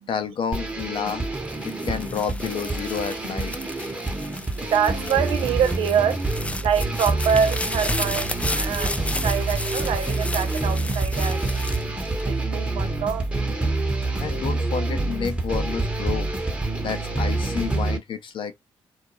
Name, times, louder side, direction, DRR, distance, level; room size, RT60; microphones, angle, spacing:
voice 1, 0.1-1.3 1.6-3.5 14.2-16.3 16.8-18.6, left 7 dB, 60° left, 0.6 m, -30 dB
sound 1, 0.5-18.0, right 2 dB, 15° right, 0.9 m, -27 dB
sound 2, 1.4-12.7 13.3-13.8, left 2 dB, 15° left, 0.4 m, -33 dB
voice 2, 3.8-13.9, right 7 dB, 75° right, 0.5 m, -26 dB
2.4 x 2.1 x 2.9 m
supercardioid pair, 65°, 10 cm